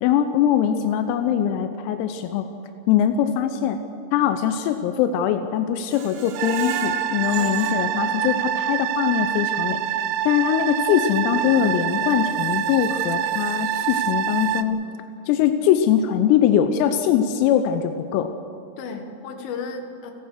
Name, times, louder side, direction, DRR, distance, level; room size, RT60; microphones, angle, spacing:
voice 1, 0.0-2.5 2.9-3.8 4.1-9.8 10.2-14.9 15.3-18.3, left 9 dB, 90° left, 9 dB, 3.6 m, -22 dB
Screech, 5.9-8.9 9.3-9.4 9.8-9.9, right 6 dB, 70° right, 2.4 m, -38 dB
sound 1, 6.4-14.6, right 10 dB, 85° right, 3.4 m, -25 dB
voice 2, 7.4-8.6 18.8-20.1, left 4 dB, 75° left, 6 dB, 4.2 m, -35 dB
29.0 x 15.5 x 6.5 m, 2.7 s
omnidirectional pair, 6.0 m